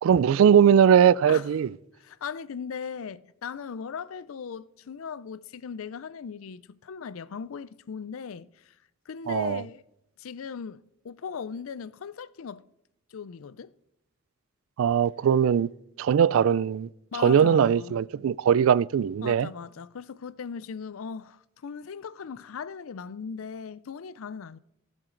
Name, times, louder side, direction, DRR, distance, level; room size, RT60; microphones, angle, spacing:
voice 1, 0.0-1.7 9.3-9.6 14.8-15.7 16.0-16.9 17.2-19.5, right 8 dB, 70° right, 0.3 m, -20 dB
voice 2, 2.0-8.7 9.1-9.8 10.2-12.6 13.1-13.7 17.1-17.9 19.2-24.6, left 6 dB, 75° left, 0.4 m, -38 dB
18.0 x 7.4 x 3.8 m
head